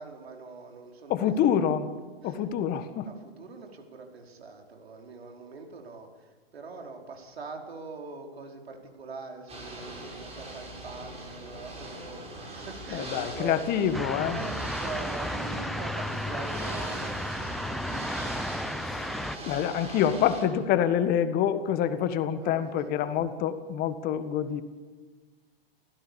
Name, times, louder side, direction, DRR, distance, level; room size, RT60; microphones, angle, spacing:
voice 1, 0.0-1.5 2.2-2.4 3.0-13.7 14.3-18.0 22.4-23.2, right 4 dB, 80° right, 2 dB, 4.8 m, -43 dB
voice 2, 1.1-1.9 2.2-3.1 12.9-14.4 18.8-19.1 19.5-24.6, left 9 dB, 30° left, 11 dB, 1.6 m, -26 dB
Ocean / Boat Water vehicle, 9.5-20.4, right 1 dB, 20° right, 7.0 m, -41 dB
sound 1, 13.9-19.4, left 1 dB, ahead, 0.7 m, -33 dB
29.5 x 16.0 x 7.2 m, 1.4 s
hypercardioid pair, 125°, 31 cm